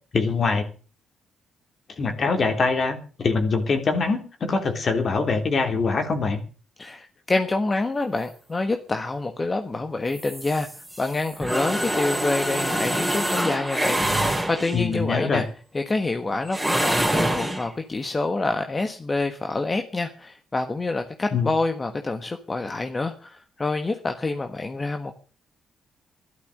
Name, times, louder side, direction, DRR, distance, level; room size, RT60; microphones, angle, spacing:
voice 1, 0.1-0.7 2.0-6.4 14.7-15.4 21.3-21.5, left 4 dB, 45° left, 6 dB, 3.3 m, -23 dB
voice 2, 6.8-15.5 15.7-25.1, left 3 dB, 25° left, 6 dB, 1.4 m, -27 dB
sound 1, 10.1-14.9 16.5-17.7, right 1 dB, ahead, 3.8 m, -25 dB
13.0 x 12.0 x 6.6 m, 0.39 s
cardioid pair, 90°, 0 cm